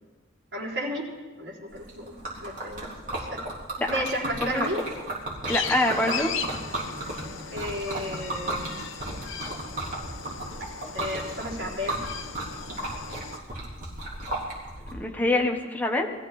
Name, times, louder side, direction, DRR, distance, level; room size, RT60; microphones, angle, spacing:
voice 1, 0.5-1.1 1.4-2.9 3.2-3.4 3.9-4.8 7.5-8.7 10.9-12.0, equal, 60° right, -4 dB, 4.3 m, -33 dB
Liquid, 1.7-14.9, right 1 dB, 40° right, 4.1 m, -34 dB
sound 1, 5.5-13.4, left 6 dB, 70° left, 1.1 m, -37 dB
voice 2, 5.5-6.3 14.9-16.1, left 2 dB, 10° left, 2 dB, 1.4 m, -25 dB
21.5 x 14.5 x 4.4 m, 1.3 s
head